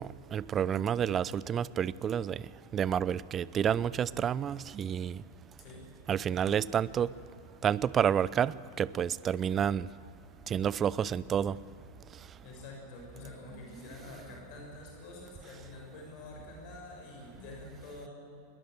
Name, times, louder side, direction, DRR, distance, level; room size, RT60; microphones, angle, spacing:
voice 1, 0.0-2.4 2.7-5.2 6.1-7.1 7.6-9.9 10.5-11.6, right 8 dB, 25° right, 0.5 m, -29 dB
voice 2, 12.4-18.1, left 2 dB, 45° left, 6.3 m, -47 dB
21.5 x 20.5 x 7.9 m
figure-of-eight pair, 90°, 0 cm